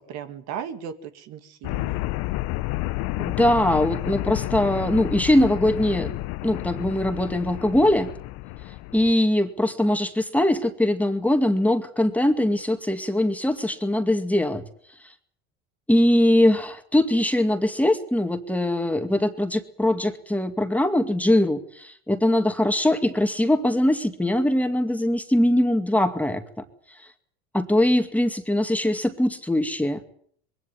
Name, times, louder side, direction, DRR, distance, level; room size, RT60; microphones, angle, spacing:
voice 1, 0.0-2.0, right 8 dB, 60° right, 8 dB, 2.5 m, -36 dB
sound 1, 1.6-9.1, left 19 dB, 65° left, 0.9 m, -30 dB
voice 2, 3.2-6.1 6.4-8.1 8.9-14.6 15.9-26.4 27.5-30.0, left 1 dB, 5° left, 6 dB, 2.2 m, -22 dB
22.0 x 17.0 x 9.4 m, 0.62 s
supercardioid pair, 110°, 30 cm